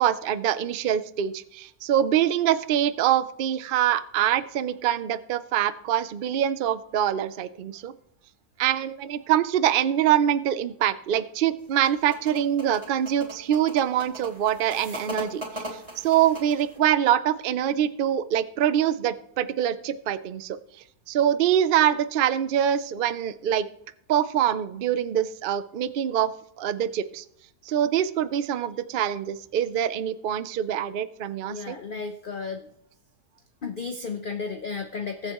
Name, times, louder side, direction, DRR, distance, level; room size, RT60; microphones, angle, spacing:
voice 1, 0.0-7.9 8.6-15.6 16.0-20.6 21.1-23.7 24.1-26.3 26.6-27.2 27.7-31.8, right 10 dB, 85° right, 13 dB, 0.4 m, -24 dB
sound 1, 11.6-16.8, right 1 dB, 20° right, 3.0 m, -39 dB
voice 2, 31.5-32.7 33.6-35.3, left 5 dB, 45° left, 6 dB, 0.7 m, -33 dB
22.0 x 7.9 x 3.0 m, 0.73 s
omnidirectional pair, 1.7 m